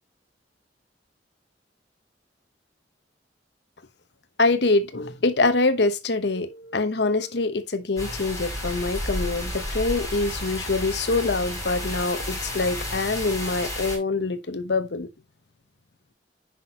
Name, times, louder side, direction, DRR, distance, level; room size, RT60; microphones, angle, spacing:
voice 1, 4.4-15.1, left 3 dB, 65° left, 0.9 m, -25 dB
sound 1, 8.0-14.0, left 1 dB, 15° left, 6.0 m, -31 dB
10.0 x 6.0 x 2.9 m
head